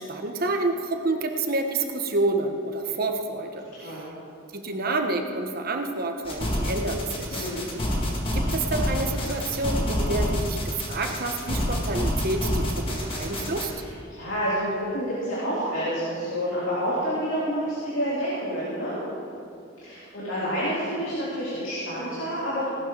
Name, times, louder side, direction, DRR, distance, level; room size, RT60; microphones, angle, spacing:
voice 1, 0.0-4.0 4.5-7.5 8.0-13.7, right 2 dB, 50° right, 4 dB, 1.1 m, -29 dB
sound 1, 6.2-13.7, equal, 30° left, 1.8 m, -28 dB
voice 2, 7.3-7.7 14.1-19.1 19.8-22.7, equal, 75° left, -8 dB, 3.2 m, -28 dB
18.0 x 11.5 x 3.9 m, 2.5 s
head